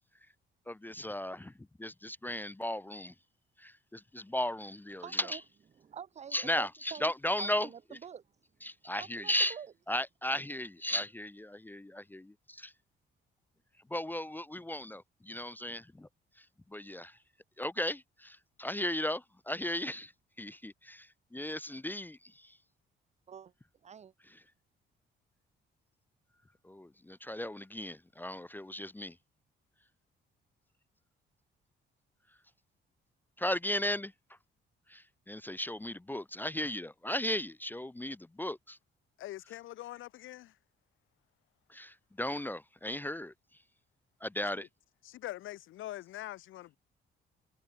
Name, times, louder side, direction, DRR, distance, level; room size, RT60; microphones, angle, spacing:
voice 1, 0.7-1.5 1.8-3.1 3.6-5.4 6.3-7.7 8.6-9.6 9.9-12.7 13.9-16.1 16.7-17.2 17.6-20.1 20.4-21.1 21.3-22.5 26.6-29.1 33.4-34.1 34.9-38.8 41.7-43.3 44.2-44.7, left 1 dB, 10° left, 0.5 m, -36 dB
voice 2, 5.0-5.4 5.8-7.1 7.4-8.2 9.0-9.7 23.3-23.5 23.8-24.1, right 8 dB, 35° right, 0.6 m, -47 dB
voice 3, 39.2-40.5 44.6-44.7 45.0-46.8, left 15 dB, 80° left, 1.3 m, -43 dB
cardioid pair, 90°, 20 cm